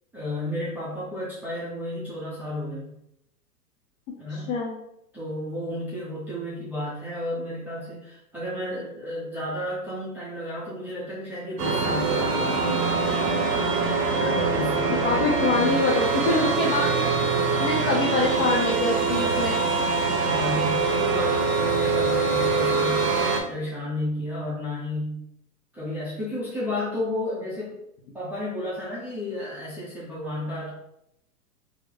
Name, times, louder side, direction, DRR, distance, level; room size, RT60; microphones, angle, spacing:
voice 1, 0.1-2.9 4.2-4.5 5.1-13.0 14.1-15.1 20.2-23.1 23.5-25.2 25.7-27.8 28.1-30.7, left 1 dB, 5° right, -11 dB, 0.5 m, -32 dB
voice 2, 4.3-4.8 14.9-17.0 17.6-19.6, left 3 dB, 40° left, -4 dB, 0.8 m, -25 dB
sound 1, 11.6-23.4, right 4 dB, 85° right, 1.0 m, -24 dB
3.4 x 2.1 x 3.6 m, 0.78 s
hypercardioid pair, 130°, 47 cm